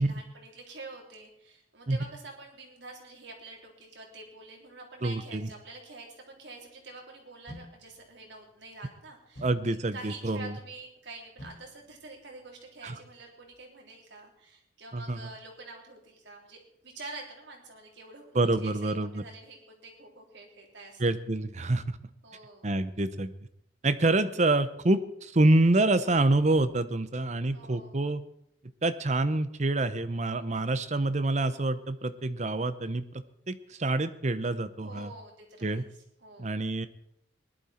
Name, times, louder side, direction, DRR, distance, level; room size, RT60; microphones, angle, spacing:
voice 1, 0.0-21.0 22.2-22.7 27.5-28.1 34.8-35.9 36.2-36.6, right 3 dB, 70° right, 0 dB, 3.6 m, -47 dB
voice 2, 5.0-5.5 9.4-10.5 12.8-12.9 14.9-15.2 18.3-19.2 21.0-21.8 22.6-23.3 23.8-28.2 28.8-35.1 35.6-35.8 36.4-36.9, right 2 dB, 40° right, 12 dB, 0.8 m, -27 dB
sound 1, 7.5-13.5, equal, 80° left, 4.8 m, -53 dB
19.5 x 11.5 x 4.4 m, 0.75 s
head